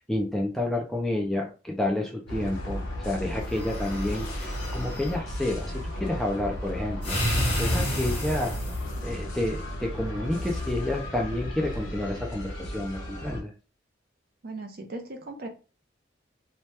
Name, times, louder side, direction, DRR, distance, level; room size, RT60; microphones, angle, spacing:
voice 1, 0.0-7.2 7.6-8.6 9.0-13.5, left 1 dB, ahead, 0 dB, 0.3 m, -30 dB
sound 1, 2.3-13.4, left 1 dB, 85° left, 0.9 m, -34 dB
sound 2, 3.4-5.2 7.0-9.0, equal, 30° left, 1.3 m, -30 dB
voice 2, 14.4-15.5, right 2 dB, 50° right, 4 dB, 0.6 m, -38 dB
2.8 x 2.2 x 3.2 m, 0.34 s
head